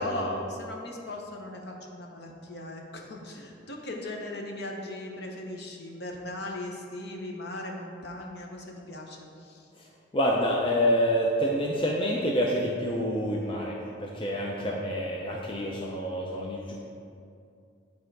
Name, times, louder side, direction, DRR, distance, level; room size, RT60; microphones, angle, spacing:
voice 1, 0.0-9.7 14.5-14.8, left 1 dB, 55° left, 1 dB, 0.8 m, -38 dB
voice 2, 10.1-16.7, equal, 25° left, -2 dB, 0.5 m, -27 dB
9.0 x 3.6 x 4.6 m, 2.5 s
head